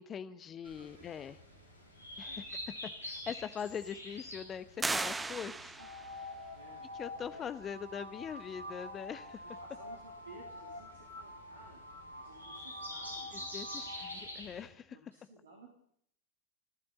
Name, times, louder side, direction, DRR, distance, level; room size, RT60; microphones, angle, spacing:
voice 1, 0.0-1.4 2.2-2.6 3.0-5.7 7.0-9.4 13.3-15.0, left 8 dB, 25° left, 14 dB, 1.0 m, -42 dB
sound 1, 0.6-14.7, left 1 dB, 80° right, 7.2 m, -48 dB
voice 2, 0.8-1.2 2.2-2.4 5.4-5.9 6.5-6.9 7.3-7.5 9.4-11.8 12.1-13.9 14.9-15.7, right 3 dB, 65° right, 0 dB, 3.5 m, -57 dB
sound 2, 4.8-6.2, right 3 dB, 10° right, 0.9 m, -36 dB
sound 3, 5.8-14.2, left 1 dB, 85° left, 3.3 m, -47 dB
28.0 x 12.5 x 4.0 m, 0.65 s
figure-of-eight pair, 90°, 0 cm